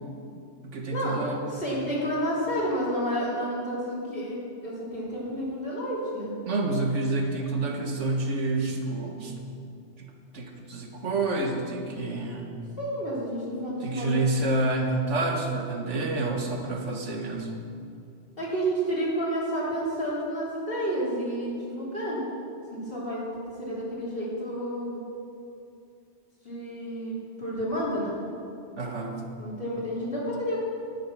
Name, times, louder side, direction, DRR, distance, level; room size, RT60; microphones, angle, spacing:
voice 1, 0.6-1.4 6.5-9.4 10.0-12.5 13.8-17.6 28.8-29.2, right 2 dB, 75° right, 2 dB, 1.6 m, -28 dB
voice 2, 1.5-6.3 12.8-14.2 18.4-22.2 22.7-23.2 23.6-25.0 26.4-28.1 29.4-30.6, equal, 50° left, -7 dB, 3.6 m, -30 dB
11.5 x 9.5 x 6.0 m, 2.6 s
omnidirectional pair, 1.2 m